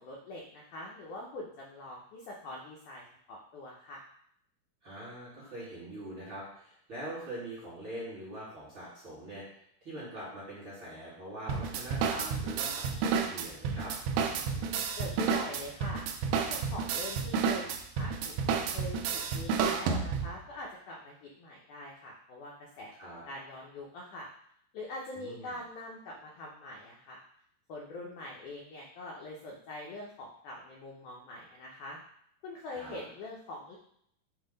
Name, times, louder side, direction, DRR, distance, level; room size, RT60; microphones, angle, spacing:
voice 1, 0.0-4.0 14.4-16.0 16.5-17.7 18.0-24.3 24.7-27.2 27.7-32.0 32.4-33.8, left 2 dB, 80° left, -2 dB, 1.8 m, -44 dB
voice 2, 4.8-9.4 9.8-13.9 22.9-23.2 25.1-25.5 32.7-33.0, right 1 dB, 40° right, -8 dB, 1.9 m, -43 dB
sound 1, 11.5-20.4, right 6 dB, 80° right, 2.2 m, -31 dB
7.6 x 2.8 x 5.1 m, 0.70 s
omnidirectional pair, 4.6 m